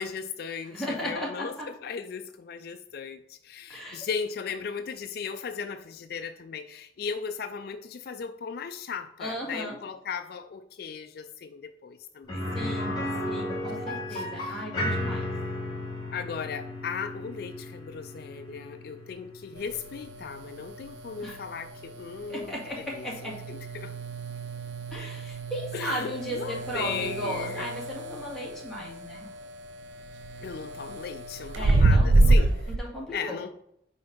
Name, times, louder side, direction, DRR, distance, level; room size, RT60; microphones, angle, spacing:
voice 1, 0.0-1.5 1.8-13.1 13.3-14.6 16.1-23.9 25.7-27.7 30.4-32.6 33.1-33.5, left 6 dB, 55° left, 9 dB, 0.3 m, -37 dB
voice 2, 0.7-1.7 3.7-4.1 9.2-9.8 12.5-13.0 13.3-15.3 21.2-21.4 22.3-23.3 24.9-29.3 31.5-32.3 32.8-33.4, equal, ahead, -6 dB, 2.1 m, -36 dB
sound 1, 12.3-22.1 22.4-22.5 24.9-25.0, left 1 dB, 25° left, 2.9 m, -35 dB
sound 2, 19.6-32.8, right 2 dB, 90° right, 0.5 m, -28 dB
5.2 x 4.4 x 5.3 m, 0.72 s
head